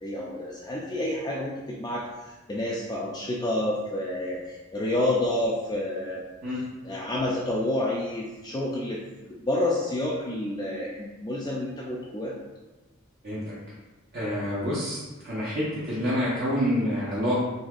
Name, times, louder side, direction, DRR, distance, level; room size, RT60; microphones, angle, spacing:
voice 1, 0.0-6.3 6.8-9.0 9.3-12.3, left 1 dB, 20° left, -5 dB, 0.3 m, -29 dB
voice 2, 13.2-13.5 14.1-15.0 15.2-17.4, equal, 55° right, -8 dB, 0.7 m, -27 dB
4.0 x 2.7 x 2.4 m, 1.2 s
head